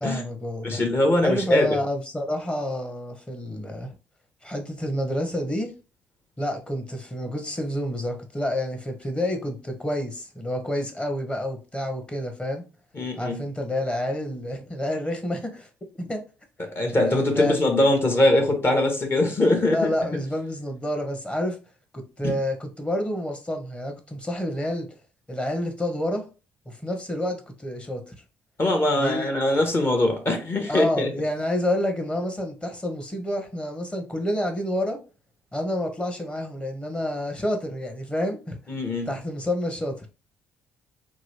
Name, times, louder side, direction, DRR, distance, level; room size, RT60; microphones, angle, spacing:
voice 1, 0.0-0.8 1.2-3.9 4.4-5.7 6.4-12.6 13.2-15.7 16.0-16.2 16.9-17.6 19.7-21.6 21.9-24.9 25.3-26.3 26.7-28.1 29.0-29.3 30.7-35.0 35.5-38.6 39.1-40.1, left 1 dB, 15° left, 0.9 m, -29 dB
voice 2, 0.6-1.8 12.9-13.4 16.6-19.8 22.2-22.3 28.6-31.1 38.7-39.1, left 1 dB, 35° left, 1.0 m, -22 dB
2.9 x 2.4 x 3.1 m
hypercardioid pair, 45°, 7 cm